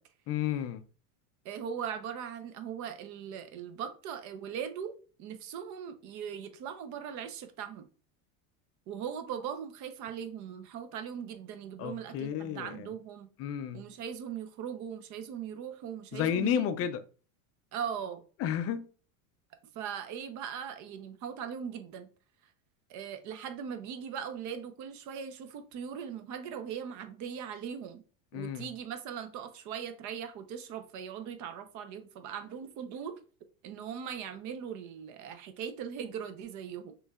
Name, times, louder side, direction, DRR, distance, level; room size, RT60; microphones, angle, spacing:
voice 1, 0.3-0.8 11.8-12.9 13.4-13.9 16.1-17.0 18.4-18.9 28.3-28.7, left 9 dB, 35° left, 0.5 m, -32 dB
voice 2, 1.4-7.9 8.9-13.3 13.7-16.7 17.7-18.2 19.7-22.1 22.9-28.0 28.3-33.1 33.6-36.9, right 8 dB, 45° right, 0.8 m, -39 dB
6.1 x 3.2 x 2.4 m
supercardioid pair, 140°, 43 cm